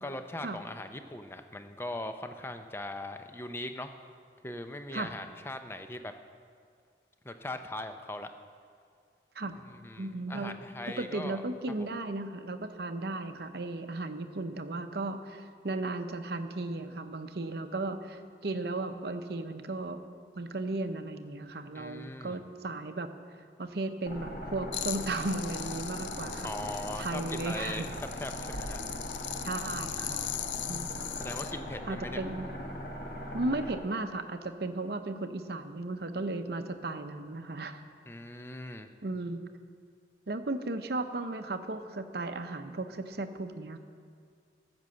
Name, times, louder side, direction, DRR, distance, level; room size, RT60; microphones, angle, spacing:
voice 1, 0.0-3.9 4.4-6.1 7.2-8.3 9.7-11.4 21.7-22.4 26.4-27.9 28.2-28.8 31.2-32.2 38.1-38.9, left 1 dB, 15° left, 8 dB, 0.5 m, -40 dB
voice 2, 10.0-10.6 11.0-20.0 20.4-23.1 23.6-26.5 27.0-27.9 29.4-30.4 30.7-31.0 31.9-32.5 33.3-37.8 39.0-39.4 40.3-43.8, right 2 dB, 60° right, 8 dB, 0.7 m, -35 dB
sound 1, 24.0-33.8, equal, 55° left, 1.6 m, -40 dB
sound 2, 24.7-31.5, left 11 dB, 80° left, 0.5 m, -39 dB
13.5 x 6.1 x 7.7 m, 2.2 s
head